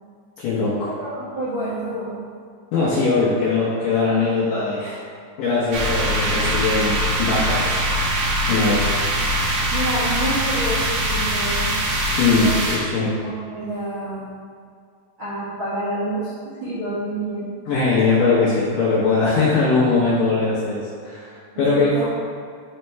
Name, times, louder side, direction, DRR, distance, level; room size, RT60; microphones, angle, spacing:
voice 1, 0.4-0.9 2.7-5.0 5.4-7.8 8.5-8.9 12.2-13.1 17.7-22.1, left 3 dB, 70° left, -8 dB, 2.1 m, -20 dB
voice 2, 1.0-2.2 2.8-3.1 9.7-11.7 12.4-12.6 13.0-14.3 15.2-17.5 21.5-22.1, right 1 dB, 85° right, -10 dB, 1.1 m, -28 dB
sound 1, 5.7-12.8, right 1 dB, 70° right, 2.0 m, -22 dB
6.4 x 4.3 x 4.5 m, 2.2 s
omnidirectional pair, 5.0 m